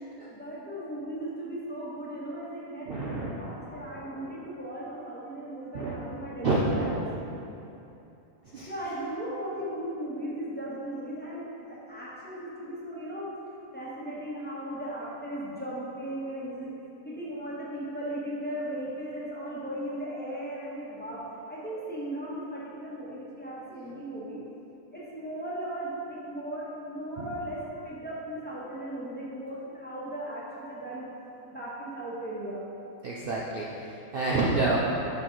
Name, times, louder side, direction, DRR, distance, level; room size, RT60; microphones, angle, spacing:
voice 1, 0.3-7.0 8.7-13.3 13.7-16.7 17.0-24.4 24.9-31.1 31.5-32.7, right 1 dB, 5° left, -7 dB, 1.3 m, -37 dB
voice 2, 2.8-3.4 5.7-6.0 6.4-6.9 8.5-8.7 23.7-23.8 27.2-27.3 33.0-34.8, right 2 dB, 50° right, -5 dB, 0.8 m, -28 dB
10.5 x 4.7 x 3.9 m, 2.8 s
omnidirectional pair, 1.5 m